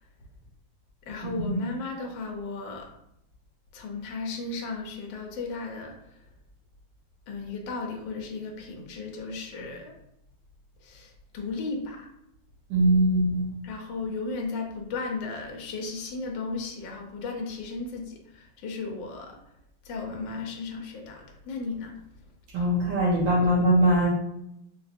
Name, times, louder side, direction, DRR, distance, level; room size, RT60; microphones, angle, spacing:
voice 1, 1.1-2.9 3.7-6.2 7.3-10.0 10.8-12.1 13.6-19.4 19.8-22.0, left 3 dB, 75° left, 1 dB, 1.4 m, -35 dB
voice 2, 12.7-13.5 22.5-24.1, right 1 dB, 75° right, -6 dB, 1.7 m, -22 dB
4.5 x 2.5 x 2.5 m, 0.80 s
omnidirectional pair, 2.1 m